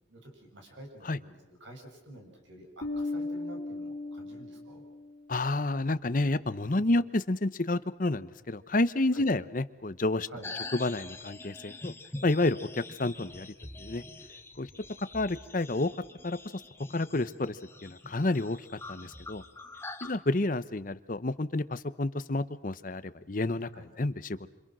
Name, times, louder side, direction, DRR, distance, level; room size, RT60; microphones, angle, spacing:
voice 1, 0.1-4.8 6.7-6.9 9.1-9.3 10.3-10.5 23.7-23.9, right 1 dB, 70° right, 2 dB, 7.0 m, -49 dB
Bass guitar, 2.8-5.2, left 2 dB, 70° left, 2.7 m, -36 dB
voice 2, 5.3-10.3 10.8-11.9 12.2-13.5 13.8-14.0 14.6-14.7 15.1-15.9 16.2-16.4 16.9-18.6 18.9-19.4 20.0-23.7 24.0-24.4, left 2 dB, 45° left, 13 dB, 0.8 m, -29 dB
sound 1, 10.4-20.1, left 2 dB, 15° left, 1.2 m, -45 dB
27.0 x 26.5 x 6.2 m, 0.96 s
head